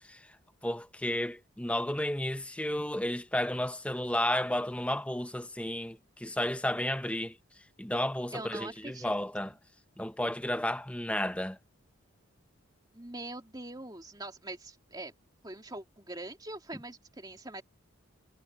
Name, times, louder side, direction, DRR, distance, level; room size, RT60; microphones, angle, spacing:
voice 1, 0.6-7.4 7.8-9.5 10.0-11.6, left 1 dB, 5° left, 0.7 m, -32 dB
voice 2, 8.3-9.1 9.4-9.5 12.9-15.1 15.4-17.6, right 2 dB, 20° right, 3.1 m, -43 dB
head